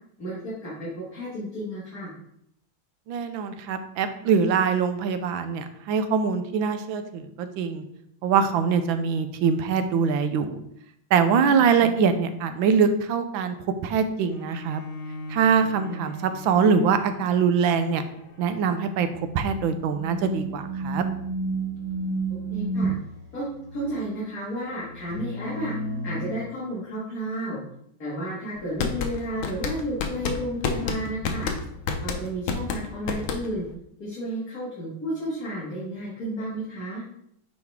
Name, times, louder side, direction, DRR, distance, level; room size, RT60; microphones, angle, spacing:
voice 1, 0.2-2.1 11.6-12.0 15.9-16.1 22.3-22.9 23.3-23.5 23.7-25.7 26.0-27.6 28.0-31.5 32.0-33.7 34.0-37.0, right 1 dB, 45° left, -7 dB, 2.3 m, -32 dB
voice 2, 3.1-7.8 8.2-10.6 11.1-13.5 13.8-14.8 15.3-18.0 18.4-19.1 19.3-21.0, right 6 dB, 80° right, 9 dB, 1.4 m, -23 dB
Bowed string instrument, 14.2-19.5, left 1 dB, 65° left, 0.5 m, -40 dB
sound 1, 19.4-22.9 25.1-26.4, right 2 dB, 65° right, 2.0 m, -30 dB
sound 2, 28.6-33.7, left 5 dB, 85° left, 1.6 m, -29 dB
9.3 x 4.1 x 3.5 m, 0.73 s
omnidirectional pair, 2.2 m